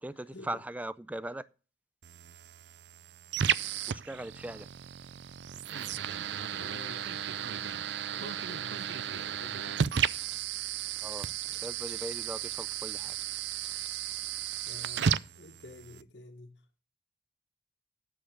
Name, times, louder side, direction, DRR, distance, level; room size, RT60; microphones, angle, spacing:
voice 1, 0.0-1.4 3.9-4.7 11.0-13.2, right 1 dB, 10° right, 0.4 m, -40 dB
sound 1, 2.0-16.0, right 8 dB, 80° right, 0.5 m, -34 dB
voice 2, 6.5-7.7 8.0-10.1 14.6-16.6, left 2 dB, 80° left, 1.7 m, -50 dB
9.1 x 7.2 x 6.4 m
head